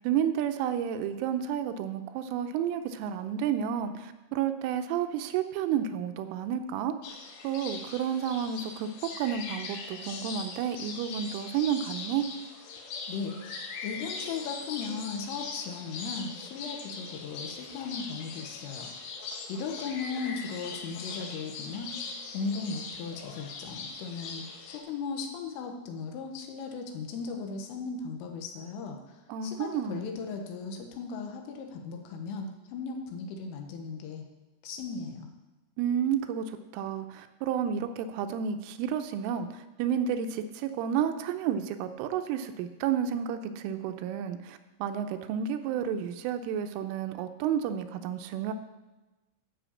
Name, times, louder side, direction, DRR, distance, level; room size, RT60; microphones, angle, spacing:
voice 1, 0.0-6.9 7.4-12.3 29.3-30.1 35.8-48.5, right 8 dB, 80° right, 8 dB, 3.1 m, -31 dB
sound 1, 7.0-24.8, left 4 dB, 70° left, 3.3 m, -41 dB
voice 2, 13.1-18.9 19.5-21.9 22.3-34.3 34.6-35.3, left 5 dB, 85° left, 3 dB, 3.8 m, -37 dB
13.0 x 5.8 x 7.0 m, 1.1 s
omnidirectional pair, 5.8 m